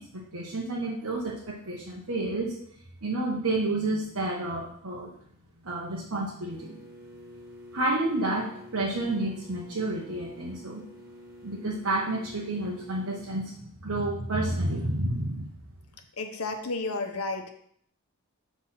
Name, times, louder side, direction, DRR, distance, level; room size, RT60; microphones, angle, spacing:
voice 1, 0.0-2.5 3.0-5.1 5.6-6.8 7.7-10.8 11.4-15.5, right 2 dB, 75° right, -4 dB, 1.2 m, -30 dB
sound 1, 6.5-13.2, left 1 dB, 50° right, 2.2 m, -48 dB
voice 2, 16.2-17.5, left 3 dB, 80° left, 5 dB, 0.9 m, -32 dB
6.2 x 3.6 x 5.7 m, 0.66 s
head